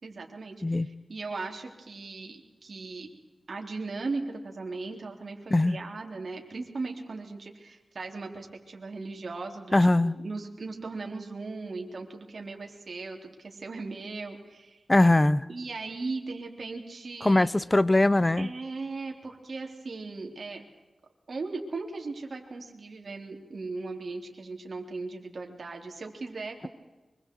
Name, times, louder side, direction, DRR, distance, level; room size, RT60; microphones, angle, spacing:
voice 1, 0.0-3.1 3.5-14.8 15.5-17.5 18.4-20.6 21.3-26.7, right 3 dB, 60° right, 2 dB, 3.7 m, -38 dB
voice 2, 9.7-10.1 14.9-15.5 17.2-18.5, left 2 dB, 20° left, 18 dB, 0.7 m, -21 dB
24.5 x 24.5 x 4.8 m, 1.1 s
wide cardioid pair, 80°, 0 cm